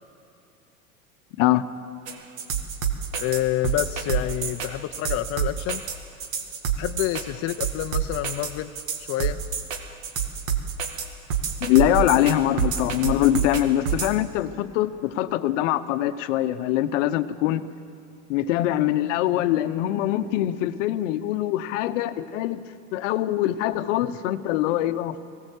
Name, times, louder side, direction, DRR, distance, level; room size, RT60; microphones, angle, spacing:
sound 1, 2.1-14.1, right 8 dB, 70° right, 2.1 m, -27 dB
voice 1, 3.2-5.8 6.8-8.7 9.1-9.4, left 14 dB, 35° left, 8 dB, 0.6 m, -28 dB
voice 2, 11.6-17.6 18.3-22.6 22.9-25.2, left 13 dB, 60° left, 11 dB, 1.0 m, -23 dB
19.0 x 17.0 x 8.2 m, 2.5 s
hypercardioid pair, 100°, 41 cm